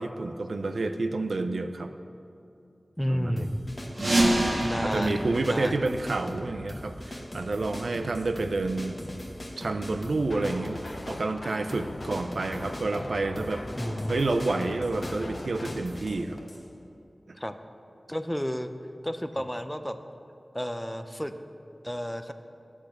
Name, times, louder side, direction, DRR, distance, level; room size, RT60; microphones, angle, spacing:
voice 1, 0.0-1.9 3.1-3.5 4.0-4.5 4.8-9.0 9.6-13.6 14.1-16.4, right 2 dB, 85° right, 9 dB, 0.4 m, -29 dB
voice 2, 3.0-3.6 4.6-5.1 5.5-5.9 13.8-14.4 17.3-17.5 18.1-18.7 19.0-20.0 20.5-21.3 21.8-22.3, equal, 5° left, 9 dB, 0.4 m, -31 dB
sound 1, 3.4-16.6, left 1 dB, 45° left, 1.1 m, -40 dB
sound 2, 3.9-6.5, right 1 dB, 65° right, 1.6 m, -27 dB
sound 3, 10.2-15.7, left 2 dB, 75° left, 0.6 m, -41 dB
8.3 x 6.3 x 6.5 m, 2.6 s
wide cardioid pair, 70°, 0 cm